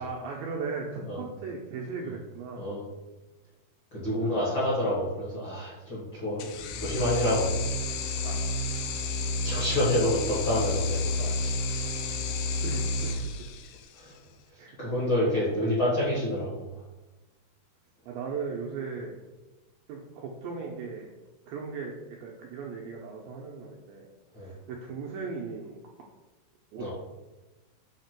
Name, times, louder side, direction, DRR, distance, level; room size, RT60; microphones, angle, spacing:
voice 1, 0.0-2.7 4.2-4.4 8.2-8.5 12.6-13.1 14.6-15.4 18.1-19.2 19.9-21.1 21.5-24.1 24.4-25.8 26.7-26.9, right 4 dB, 80° right, -1 dB, 2.1 m, -37 dB
voice 2, 3.9-6.4 6.7-7.5 9.4-12.3 13.9-14.1 14.5-16.6 24.3-24.5 26.8-26.9, left 1 dB, 45° left, -8 dB, 1.6 m, -28 dB
sound 1, 6.4-14.0, left 2 dB, 80° left, 2.4 m, -30 dB
7.4 x 2.9 x 5.9 m, 1.1 s
omnidirectional pair, 4.8 m